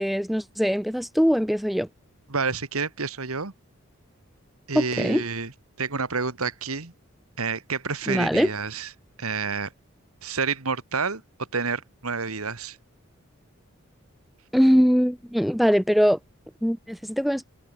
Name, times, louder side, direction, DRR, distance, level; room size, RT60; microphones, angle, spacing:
voice 1, 0.0-1.9 4.7-5.2 8.1-8.5 14.5-16.2 16.6-17.4, equal, ahead, 0.8 m, -21 dB
voice 2, 2.3-3.5 4.7-5.5 5.8-6.9 7.4-8.9 9.2-9.7 10.2-11.2 11.5-12.8, right 4 dB, 85° right, 2.0 m, -29 dB
head